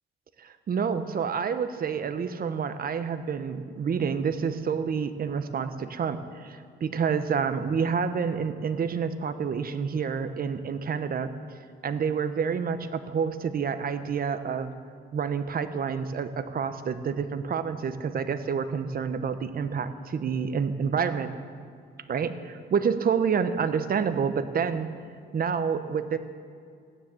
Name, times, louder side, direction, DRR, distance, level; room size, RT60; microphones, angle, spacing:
voice 1, 0.4-11.3 11.8-14.7 15.1-21.3 22.1-24.9 25.3-26.2, right 6 dB, 50° right, 10 dB, 1.0 m, -28 dB
15.0 x 10.0 x 7.8 m, 2.3 s
cardioid pair, 90°, 20 cm